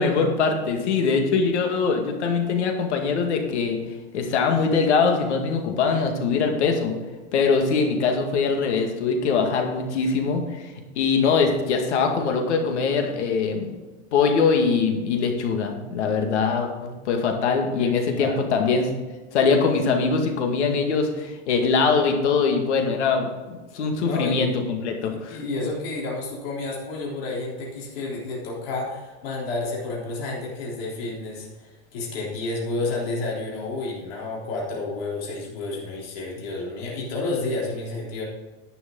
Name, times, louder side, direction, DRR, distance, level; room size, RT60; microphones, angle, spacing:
voice 1, 0.0-3.8 4.1-6.9 7.3-10.4 11.0-13.7 14.1-18.9 19.3-25.4, left 5 dB, 80° left, 4 dB, 2.1 m, -22 dB
voice 2, 17.8-18.4 24.0-24.6 25.0-38.2, left 2 dB, 60° left, -4 dB, 3.6 m, -30 dB
11.0 x 9.5 x 3.9 m, 1.2 s
supercardioid pair, 165°, 34 cm